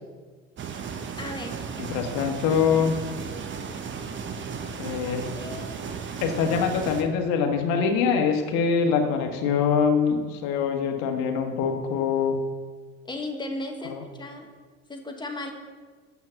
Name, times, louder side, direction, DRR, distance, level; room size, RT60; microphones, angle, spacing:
sound 1, 0.6-7.0, right 6 dB, 40° right, 1.1 m, -35 dB
voice 1, 1.2-1.6 5.0-5.8 13.0-14.5 14.9-15.5, left 2 dB, 15° left, 3 dB, 1.6 m, -36 dB
voice 2, 1.8-2.9 4.8-5.3 6.2-12.4 13.9-14.0, left 6 dB, 65° left, 4 dB, 1.5 m, -24 dB
7.1 x 6.3 x 7.1 m, 1.5 s
hypercardioid pair, 80°, 31 cm